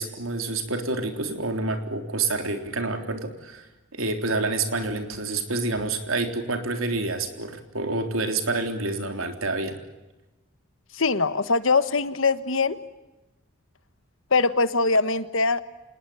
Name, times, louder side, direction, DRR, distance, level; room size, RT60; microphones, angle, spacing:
voice 1, 0.0-3.7 3.9-9.8, right 3 dB, 85° right, 6 dB, 3.7 m, -28 dB
voice 2, 10.9-12.8 14.3-15.6, left 4 dB, 75° left, 13 dB, 1.4 m, -22 dB
26.5 x 20.0 x 8.7 m, 1.1 s
head